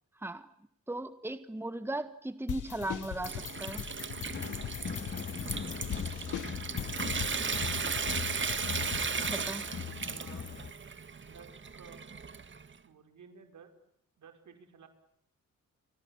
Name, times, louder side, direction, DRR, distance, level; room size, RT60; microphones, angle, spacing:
voice 1, 0.9-3.9 9.3-9.7, right 1 dB, 10° right, 11 dB, 1.5 m, -37 dB
sound 1, 2.5-9.3, left 11 dB, 80° left, 1.0 m, -41 dB
Water tap faucet / Sink (filling or washing) / Trickle dribble, 2.8-12.7, right 5 dB, 40° right, 1.8 m, -36 dB
sound 2, 4.2-10.7, left 7 dB, 35° left, 1.1 m, -40 dB
voice 2, 9.7-10.5 11.3-12.1 12.8-13.7 14.2-14.9, right 6 dB, 75° right, 6 dB, 5.2 m, -54 dB
30.0 x 25.0 x 7.4 m, 0.75 s
cardioid pair, 95°, 30 cm